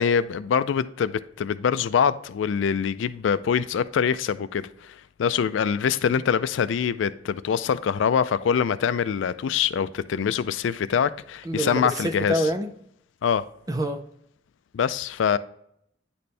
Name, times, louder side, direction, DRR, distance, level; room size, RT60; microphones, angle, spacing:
voice 1, 0.0-4.9 5.2-12.5 13.2-13.4 14.7-15.4, left 7 dB, 85° left, 0.3 m, -24 dB
voice 2, 11.4-12.7 13.7-14.0, right 1 dB, 20° right, 0.4 m, -26 dB
9.5 x 4.3 x 3.3 m
head